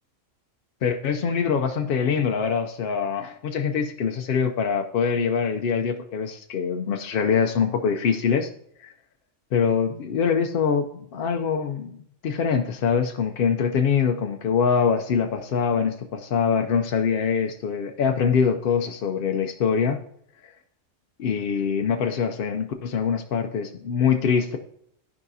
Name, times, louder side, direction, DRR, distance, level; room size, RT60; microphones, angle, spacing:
voice 1, 0.8-8.5 8.8-8.9 9.5-12.0 12.2-20.0 20.4-20.5 21.2-24.6, left 6 dB, 60° left, 5 dB, 0.6 m, -24 dB
12.5 x 4.8 x 2.7 m, 0.70 s
omnidirectional pair, 1.3 m